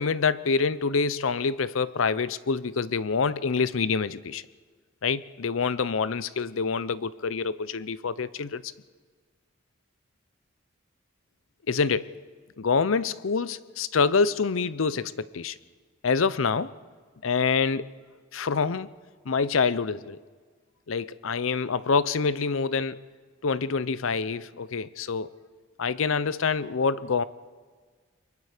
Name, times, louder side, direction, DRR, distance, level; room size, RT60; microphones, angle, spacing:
voice 1, 0.0-4.4 5.0-8.7 11.7-12.1 12.6-15.6 16.0-16.7 17.2-17.9 18.3-18.9 19.2-20.2 20.9-23.0 23.4-25.3 25.8-27.2, left 5 dB, 85° left, 17 dB, 0.6 m, -26 dB
29.5 x 23.5 x 5.0 m, 1.5 s
head